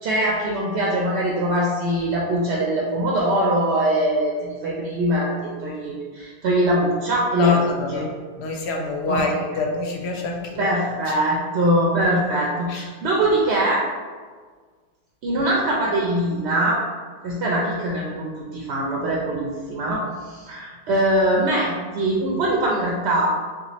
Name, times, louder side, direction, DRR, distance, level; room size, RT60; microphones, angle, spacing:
voice 1, 0.0-8.0 9.1-9.2 9.5-9.6 10.6-13.8 15.2-16.8 17.2-23.3, right 1 dB, 85° right, -3 dB, 0.9 m, -22 dB
voice 2, 7.4-8.1 8.4-10.7 11.1-11.2 12.7-12.8, left 3 dB, 85° left, 1 dB, 0.9 m, -26 dB
2.9 x 2.3 x 4.0 m, 1.5 s
omnidirectional pair, 1.1 m